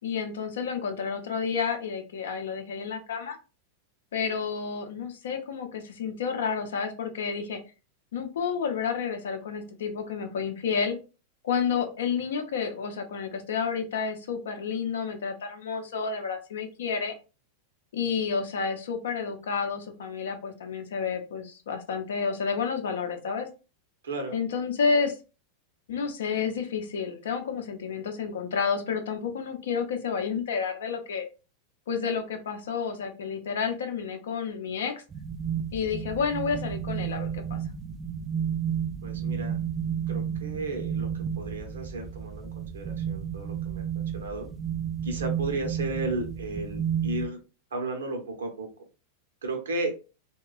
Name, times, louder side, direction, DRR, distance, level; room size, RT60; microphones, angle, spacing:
voice 1, 0.0-3.4 4.1-7.6 8.1-11.0 11.4-17.1 17.9-23.5 24.3-25.2 25.9-31.3 31.9-35.0 35.7-37.6, left 6 dB, 60° left, 5 dB, 0.5 m, -30 dB
voice 2, 24.0-24.4 39.0-39.6 40.1-41.1 41.4-44.5 45.0-47.4 47.7-48.7 49.4-49.9, right 2 dB, 65° right, 5 dB, 0.7 m, -34 dB
sound 1, 35.1-47.3, right 8 dB, 20° right, 0.4 m, -32 dB
3.0 x 2.2 x 2.3 m, 0.32 s
figure-of-eight pair, 90°, 0 cm